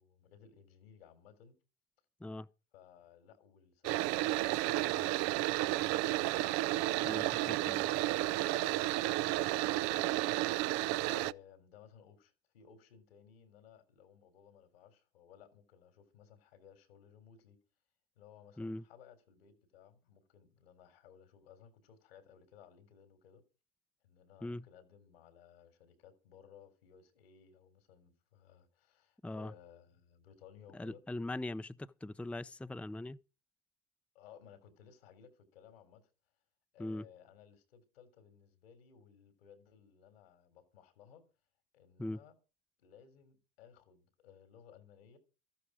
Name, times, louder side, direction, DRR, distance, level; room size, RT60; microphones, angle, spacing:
voice 1, 0.0-1.6 2.7-6.4 6.8-8.2 8.4-10.2 11.0-17.6 18.2-23.4 24.0-31.1 34.1-36.1 36.7-41.3 41.7-42.3 42.8-45.2, left 8 dB, 85° left, 3.6 m, -59 dB
sound 1, 3.8-11.3, right 17 dB, 65° right, 0.6 m, -32 dB
voice 2, 7.0-7.9 18.6-18.8 24.4-24.7 29.2-29.5 30.7-33.2 36.8-37.1 42.0-42.2, left 2 dB, 5° left, 0.6 m, -41 dB
14.0 x 11.5 x 5.0 m
hypercardioid pair, 80°, 29 cm